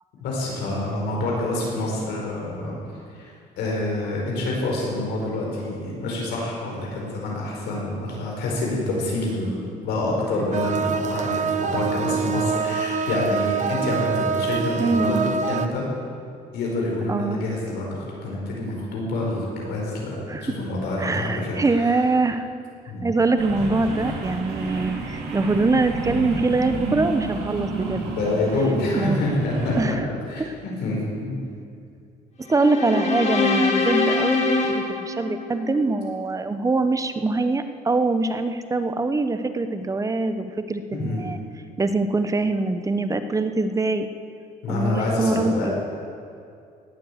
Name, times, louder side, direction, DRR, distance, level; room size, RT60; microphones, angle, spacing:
voice 1, 0.2-2.8 3.1-15.9 16.5-21.9 22.9-23.0 27.9-31.4 40.9-41.3 44.6-45.7, left 2 dB, 80° left, -3 dB, 4.7 m, -27 dB
sound 1, 10.5-15.7, right 5 dB, 45° right, 0.8 m, -25 dB
voice 2, 14.8-15.4 17.1-17.4 20.3-20.4 21.0-22.4 23.0-28.1 28.9-29.2 29.7-30.0 30.4-30.5 32.4-41.4 41.8-44.1 44.7-45.7, right 3 dB, 20° right, 9 dB, 0.9 m, -23 dB
sound 2, 23.4-29.9, right 2 dB, 80° right, 2.7 m, -30 dB
sound 3, 32.5-35.9, left 3 dB, 40° left, 2.1 m, -24 dB
18.5 x 7.8 x 8.0 m, 2.4 s
cardioid pair, 110°, 17 cm